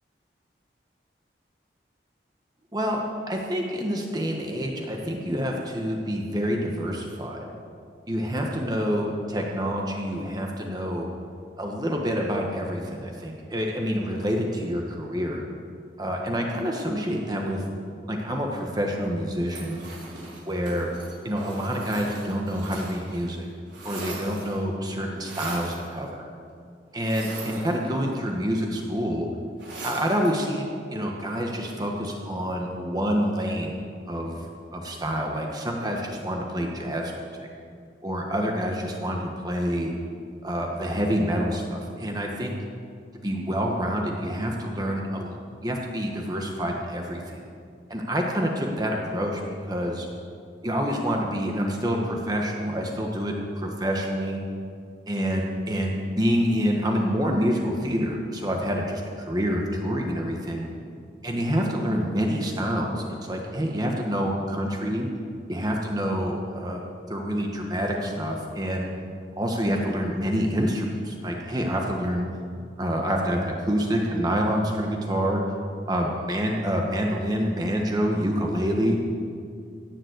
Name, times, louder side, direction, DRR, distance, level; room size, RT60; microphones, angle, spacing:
voice 1, 3.3-7.4 8.1-11.1 11.6-15.4 16.0-17.6 18.1-19.8 20.5-20.9 21.2-23.5 23.8-26.2 26.9-29.3 29.8-30.7 30.9-33.8 34.1-34.4 34.7-37.1 37.4-37.5 38.0-39.9 40.4-42.5 43.2-45.4 45.6-47.5 47.9-49.4 49.7-50.1 50.6-54.4 55.1-60.7 61.2-65.1 65.5-66.8 67.1-68.9 69.4-72.3 72.8-75.4 75.9-79.0, equal, 20° right, 0 dB, 1.3 m, -27 dB
sound 1, 19.4-23.2 23.5-24.7 25.2-25.8 27.0-28.2 29.6-30.4, right 2 dB, 85° right, 4.5 m, -39 dB
17.0 x 7.3 x 8.0 m, 2.3 s
head